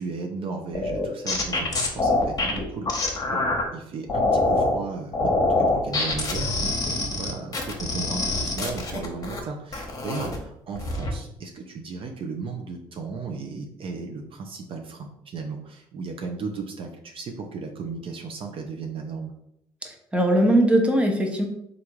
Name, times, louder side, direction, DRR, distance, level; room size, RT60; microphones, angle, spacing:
voice 1, 0.0-3.4 3.7-19.3, right 4 dB, 55° right, 3 dB, 0.7 m, -35 dB
sound 1, 0.7-3.6 4.1-4.8 5.1-9.4 9.7-10.4 10.8-11.1, left 2 dB, 35° left, 1.1 m, -25 dB
voice 2, 19.8-21.4, right 1 dB, 10° right, 2 dB, 0.9 m, -20 dB
3.4 x 2.5 x 4.5 m, 0.77 s
supercardioid pair, 70°, 11 cm